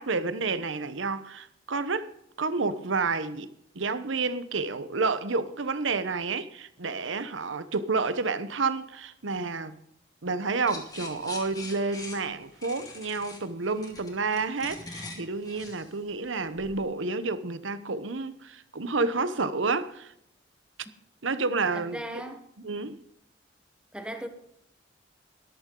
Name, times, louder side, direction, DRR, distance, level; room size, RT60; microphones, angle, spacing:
voice 1, 0.0-2.1 2.4-3.5 3.7-9.8 10.2-20.1 21.2-22.0 22.6-23.0, right 4 dB, 80° right, 1.0 m, -30 dB
sound 1, 10.7-16.8, left 3 dB, 20° left, 2.1 m, -43 dB
voice 2, 21.7-22.5 23.9-24.3, equal, 5° right, 1.3 m, -37 dB
13.5 x 12.0 x 3.8 m
head